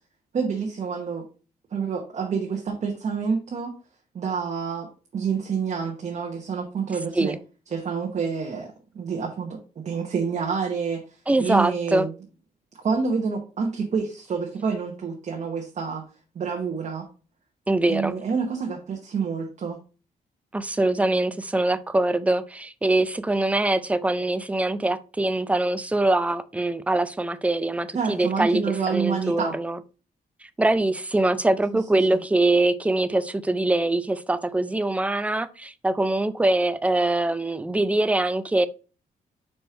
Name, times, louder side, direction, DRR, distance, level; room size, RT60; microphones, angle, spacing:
voice 1, 0.3-1.3 1.7-3.7 4.1-7.4 7.7-11.0 11.4-12.1 12.8-16.0 16.3-17.1 17.9-19.8 27.9-29.6 32.1-32.2, right 5 dB, 45° right, 1.1 m, -28 dB
voice 2, 11.3-12.1 17.7-18.1 20.5-28.6 28.9-29.8 30.6-38.7, right 2 dB, 10° right, 0.4 m, -23 dB
5.0 x 4.3 x 4.3 m
cardioid pair, 135°, 16 cm